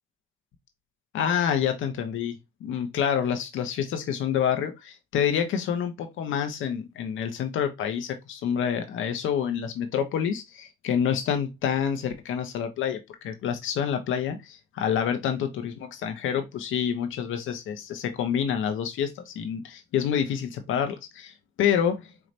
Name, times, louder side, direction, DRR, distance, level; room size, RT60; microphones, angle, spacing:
voice 1, 1.1-22.1, left 8 dB, 80° left, 1.0 m, -28 dB
4.7 x 3.2 x 2.6 m
cardioid pair, 90°, 20 cm